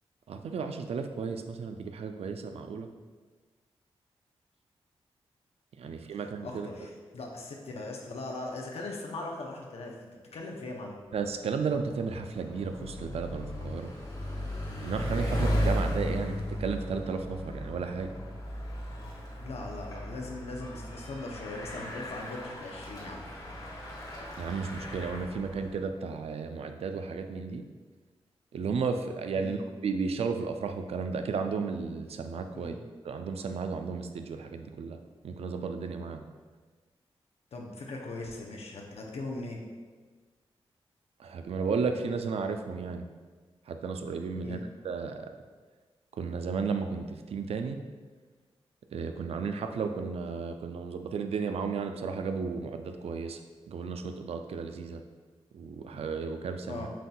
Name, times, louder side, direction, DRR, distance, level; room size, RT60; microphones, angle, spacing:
voice 1, 0.3-2.9 5.8-6.7 11.1-13.9 14.8-18.1 24.4-27.6 28.5-32.8 33.0-35.0 35.2-36.2 41.2-43.1 43.7-44.6 44.8-45.3 46.1-47.8 48.9-53.4 53.7-55.0 55.5-56.9, right 5 dB, 75° right, 7 dB, 0.4 m, -33 dB
voice 2, 6.1-11.0 19.4-23.3 29.3-29.6 32.5-32.8 37.5-39.6 44.4-44.6 56.7-56.9, left 2 dB, 75° left, 0 dB, 0.6 m, -40 dB
Bicycle, 11.2-25.8, equal, 35° left, 1.4 m, -36 dB
7.3 x 2.7 x 2.3 m, 1.4 s
cardioid pair, 55°, 11 cm